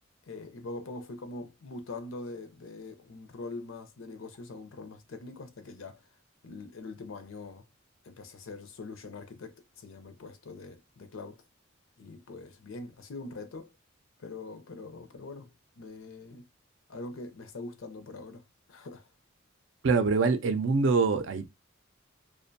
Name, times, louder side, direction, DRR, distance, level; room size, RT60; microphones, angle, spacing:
voice 1, 0.2-6.1 6.4-7.7 8.0-11.4 12.0-13.7 14.2-16.5 16.9-18.4 18.7-19.1, left 3 dB, 80° left, 0.5 m, -43 dB
voice 2, 19.8-21.5, right 4 dB, 65° right, 0.4 m, -24 dB
2.5 x 2.2 x 2.5 m
head